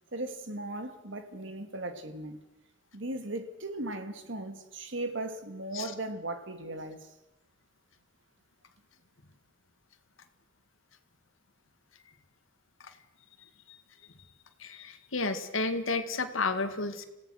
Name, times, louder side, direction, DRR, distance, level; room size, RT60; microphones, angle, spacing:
voice 1, 0.1-2.4 2.9-7.0, right 2 dB, 70° right, 2.2 m, -37 dB
voice 2, 14.6-17.0, left 3 dB, 85° left, 2.0 m, -31 dB
26.5 x 17.0 x 6.4 m
head